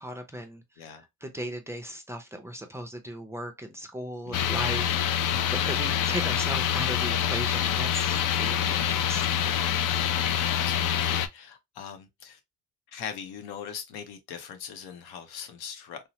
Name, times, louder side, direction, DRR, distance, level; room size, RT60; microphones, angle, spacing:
voice 1, 0.0-0.6 1.2-9.3, equal, 5° right, 0.5 m, -37 dB
voice 2, 4.3-4.7 10.0-12.4 12.9-16.0, left 7 dB, 90° left, 0.7 m, -41 dB
sound 1, 4.3-11.3, left 9 dB, 60° left, 0.4 m, -26 dB
2.8 x 2.1 x 2.8 m
cardioid pair, 90°, 37 cm